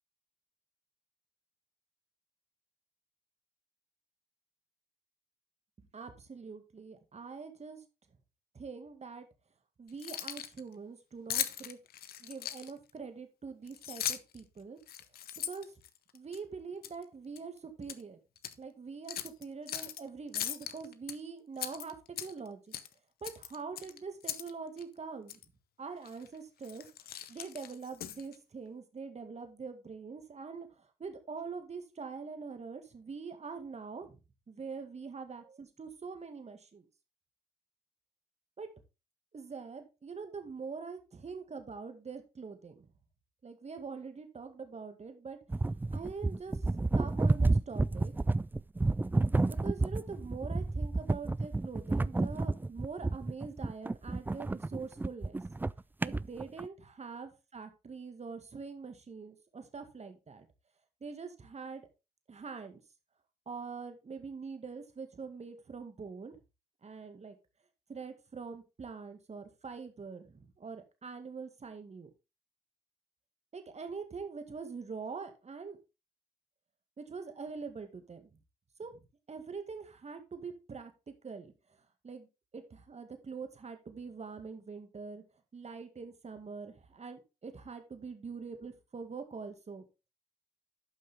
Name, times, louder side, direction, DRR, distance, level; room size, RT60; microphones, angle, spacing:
voice 1, 5.8-7.8 8.5-9.3 9.8-11.8 12.2-14.8 15.5-15.7 16.1-18.2 18.6-22.8 23.2-25.4 25.8-26.9 27.3-34.2 34.5-36.9 38.6-38.7 39.3-42.9 43.4-45.4 45.9-46.6 46.9-48.1 49.6-55.4 56.0-60.5 61.0-61.9 62.3-62.8 63.5-66.4 66.8-67.4 67.9-72.1 73.5-75.8 77.0-78.4 78.8-79.0 79.3-81.5 82.0-82.3 82.5-85.2 85.5-89.8, right 5 dB, 45° right, 7 dB, 2.0 m, -44 dB
Keys jangling, 9.9-10.6 11.3-12.9 13.7-14.4 14.8-16.4 16.8-17.0 17.4-18.0 18.4-18.5 19.1-20.0 20.3-21.1 21.6-22.5 22.7-22.9 23.2-24.5 24.8-24.9 25.3-25.4 26.0-26.3 26.6-28.4, left 11 dB, 70° left, 0.7 m, -39 dB
sound 1, 45.5-56.7, right 2 dB, 10° right, 0.3 m, -30 dB
12.0 x 5.6 x 3.6 m, 0.27 s
hypercardioid pair, 45°, 16 cm